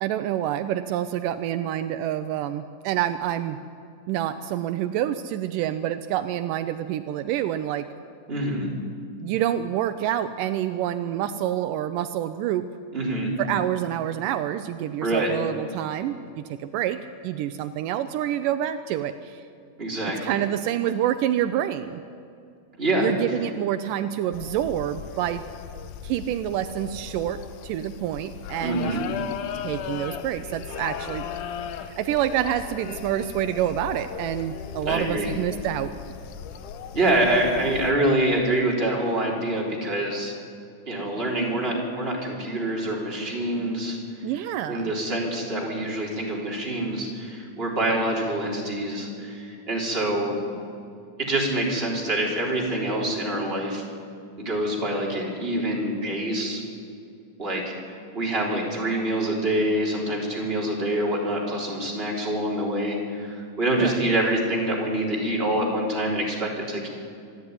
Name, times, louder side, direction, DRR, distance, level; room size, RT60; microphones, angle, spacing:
voice 1, 0.0-3.6 4.1-7.9 9.2-12.7 13.4-19.4 20.1-22.0 23.0-25.4 26.0-29.0 29.6-31.3 31.7-35.9 44.2-44.9 63.8-64.1, right 11 dB, 80° right, 11 dB, 2.2 m, -27 dB
voice 2, 8.3-8.7 12.9-13.3 15.0-15.3 19.8-20.4 22.8-23.1 28.6-29.0 34.9-35.3 36.9-40.3 40.9-44.0 44.7-50.4 51.2-53.8 54.4-56.6 57.4-66.9, right 1 dB, 15° right, -2 dB, 3.8 m, -26 dB
sound 1, 24.3-37.9, left 8 dB, 75° left, 2.3 m, -37 dB
25.0 x 11.5 x 9.6 m, 2.4 s
omnidirectional pair, 3.8 m